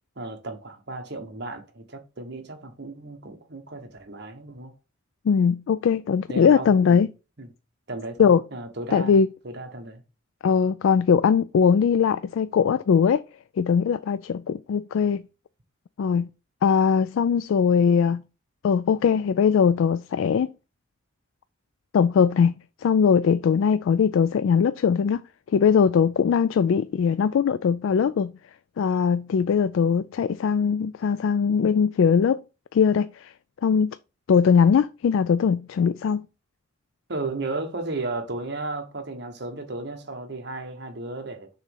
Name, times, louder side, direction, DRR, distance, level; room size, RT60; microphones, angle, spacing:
voice 1, 0.2-4.7 6.3-7.0 7.4-7.5 7.9-10.0 37.1-41.5, right 2 dB, 55° right, 1.3 m, -34 dB
voice 2, 5.3-7.1 8.2-8.4 8.9-9.3 10.4-13.2 13.6-15.2 16.0-16.3 16.6-18.2 18.6-20.5 21.9-22.5 22.8-25.2 25.5-28.3 28.8-32.4 32.7-33.3 33.6-33.9 34.3-36.2, left 6 dB, 70° left, 0.3 m, -20 dB
6.6 x 3.1 x 5.4 m
head